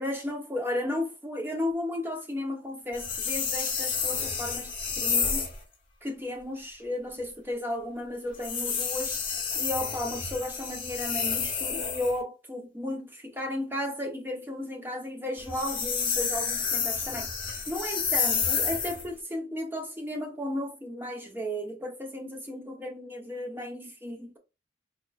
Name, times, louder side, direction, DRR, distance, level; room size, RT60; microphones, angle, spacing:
voice 1, 0.0-5.5 6.0-9.2 9.5-17.3 17.7-24.4, left 1 dB, 10° right, 0.8 m, -34 dB
sound 1, 2.9-5.6 8.3-12.2 15.4-19.1, left 6 dB, 30° left, 1.3 m, -30 dB
3.9 x 3.5 x 2.4 m
head